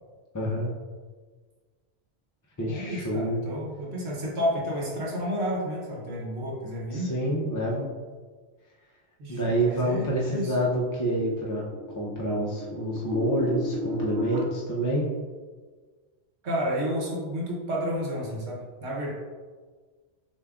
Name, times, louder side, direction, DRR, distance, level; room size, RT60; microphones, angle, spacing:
voice 1, 0.3-0.7 2.6-3.4 6.9-7.9 9.3-11.7 12.0-15.0, right 1 dB, 30° left, -4 dB, 0.4 m, -27 dB
voice 2, 2.7-7.1 9.2-10.6 16.4-19.1, equal, 85° right, -3 dB, 1.2 m, -31 dB
sound 1, 10.0-14.4, left 1 dB, 60° right, 0.7 m, -35 dB
6.7 x 2.6 x 2.3 m, 1.4 s
omnidirectional pair, 1.1 m